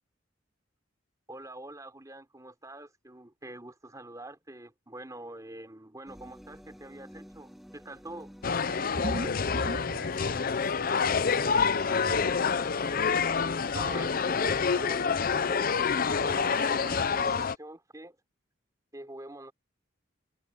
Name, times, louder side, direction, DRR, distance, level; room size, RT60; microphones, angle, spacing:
voice 1, 1.3-8.3 13.7-15.7 16.3-18.2 18.9-19.5, right 1 dB, 15° right, 3.6 m, -45 dB
sound 1, 6.1-17.5, equal, ahead, 1.5 m, -53 dB
sound 2, 8.4-17.6, left 5 dB, 45° left, 0.6 m, -27 dB
sound 3, 8.7-10.7 11.0-11.7 12.7-12.8 13.1-13.2 13.5-13.6, equal, 45° right, 1.9 m, -36 dB
voice 2, 9.2-12.4, left 2 dB, 80° left, 5.1 m, -42 dB
head